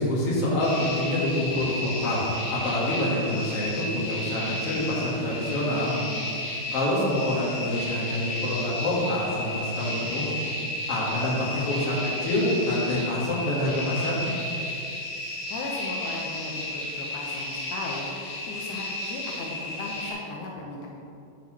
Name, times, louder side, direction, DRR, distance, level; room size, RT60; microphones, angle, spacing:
voice 1, 0.0-5.9 6.7-10.3 10.9-12.0 12.2-14.2, left 1 dB, 50° left, -5 dB, 2.1 m, -26 dB
sound 1, 0.6-20.1, left 1 dB, 70° left, 3.7 m, -33 dB
voice 2, 15.5-18.1 18.5-20.9, left 3 dB, 85° left, -1 dB, 1.8 m, -36 dB
10.5 x 6.7 x 3.1 m, 2.6 s
omnidirectional pair, 4.5 m